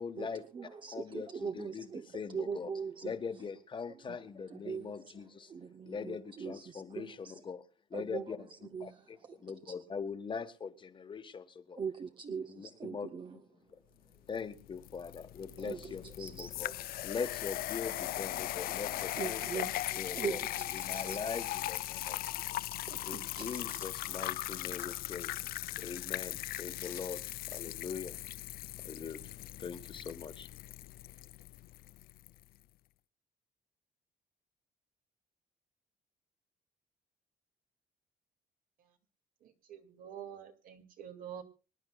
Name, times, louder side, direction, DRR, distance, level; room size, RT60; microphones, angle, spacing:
voice 1, 0.0-2.7 3.0-5.5 5.8-11.8 12.5-13.8 14.3-16.7 17.0-19.7 19.9-20.4 20.7-22.7 23.0-25.3 25.8-28.2 28.8-29.2 29.6-30.5, left 5 dB, 35° left, 1.3 m, -42 dB
voice 2, 0.5-2.1 2.3-3.1 4.5-4.9 5.5-7.3 7.9-8.2 8.7-9.0 11.8-13.4 15.6-15.9 16.2-16.5 19.2-21.2 22.9-23.8, right 6 dB, 35° right, 0.7 m, -41 dB
sound 1, 14.3-32.3, left 15 dB, 80° left, 0.5 m, -39 dB
voice 3, 39.4-41.4, right 9 dB, 70° right, 2.3 m, -47 dB
25.5 x 10.5 x 2.3 m
cardioid pair, 135°, 15 cm